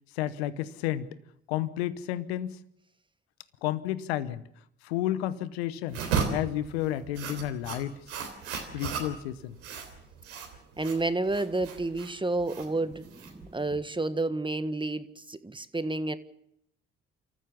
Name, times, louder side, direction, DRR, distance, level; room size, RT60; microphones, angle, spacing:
voice 1, 0.1-1.1 1.5-2.6 3.6-4.4 4.8-6.0 6.3-8.0 8.7-9.6, left 13 dB, 85° left, 16 dB, 1.0 m, -31 dB
sound 1, 5.9-13.8, right 6 dB, 85° right, 3.5 m, -35 dB
voice 2, 10.8-16.2, right 2 dB, 15° right, 12 dB, 1.5 m, -30 dB
29.5 x 14.5 x 7.1 m, 0.74 s
hypercardioid pair, 45°, 31 cm